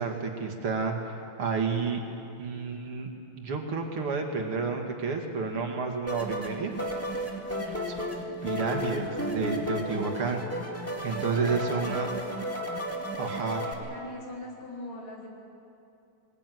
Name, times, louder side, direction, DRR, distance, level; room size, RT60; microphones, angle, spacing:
voice 1, 0.0-2.0 2.4-3.1 3.4-6.7 7.6-8.0 8.4-10.4 11.0-12.1 13.2-13.6, right 5 dB, 75° right, 2 dB, 3.2 m, -30 dB
sound 1, 6.1-13.7, equal, 5° left, 1.9 m, -33 dB
voice 2, 7.4-8.4 11.2-12.5 13.2-15.3, left 1 dB, 70° left, -3 dB, 4.9 m, -44 dB
20.5 x 20.5 x 9.4 m, 2.6 s
omnidirectional pair, 2.4 m